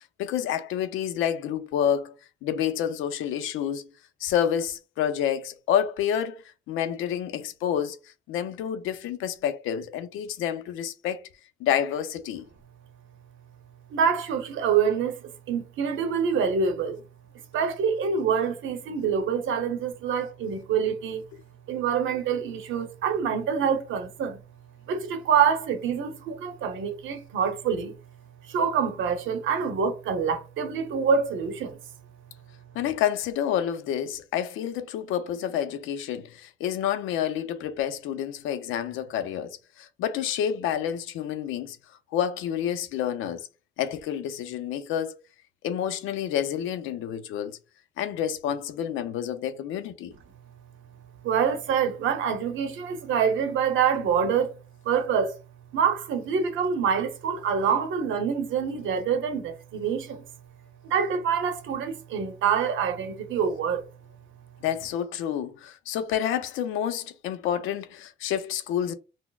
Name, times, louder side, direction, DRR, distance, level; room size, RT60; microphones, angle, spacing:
voice 1, 0.2-2.1 2.4-3.9 4.2-11.2 11.6-12.4 32.7-41.8 42.1-43.5 43.8-45.1 45.6-47.6 48.0-50.1 64.6-68.9, left 9 dB, 90° left, 0.5 m, -29 dB
voice 2, 13.9-17.0 17.5-21.2 21.7-24.4 24.9-27.9 28.5-31.8 51.2-54.5 54.8-55.4 55.7-60.2 60.8-63.8, right 7 dB, 75° right, 0.7 m, -26 dB
3.9 x 2.0 x 2.3 m
cardioid pair, 90°, 20 cm